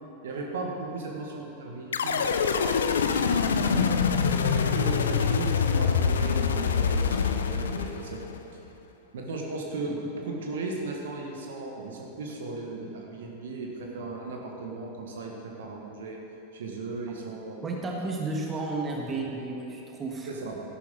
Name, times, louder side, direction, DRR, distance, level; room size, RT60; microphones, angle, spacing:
voice 1, 0.2-3.9 4.4-8.6 9.1-16.2 16.5-17.6 19.0-19.1 20.3-20.6, right 3 dB, 60° right, 0 dB, 1.6 m, -36 dB
sound 1, 1.9-8.4, left 6 dB, 65° left, 0.6 m, -25 dB
voice 2, 17.6-20.3, right 3 dB, 20° right, 0 dB, 1.6 m, -32 dB
13.0 x 11.5 x 3.9 m, 2.9 s
figure-of-eight pair, 90°, 0 cm